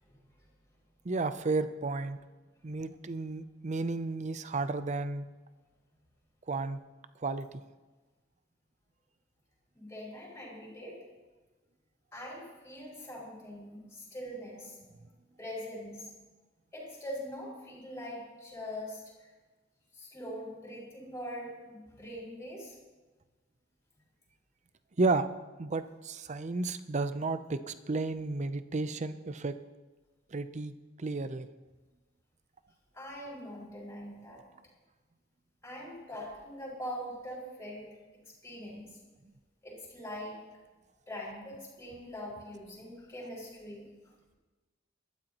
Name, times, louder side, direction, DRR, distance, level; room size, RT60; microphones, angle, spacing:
voice 1, 1.0-2.2 2.6-5.3 6.5-6.8 7.2-7.6 25.0-25.3 25.6-29.6 30.3-31.5 39.2-39.3, right 3 dB, 40° right, 12 dB, 0.6 m, -32 dB
voice 2, 9.7-11.0 12.1-14.8 15.4-16.1 16.7-19.3 19.9-22.8 32.9-34.4 35.6-37.9 38.4-39.0 39.6-40.4 41.1-43.8, equal, 15° left, -6 dB, 5.4 m, -42 dB
21.0 x 13.0 x 3.0 m, 1.2 s
head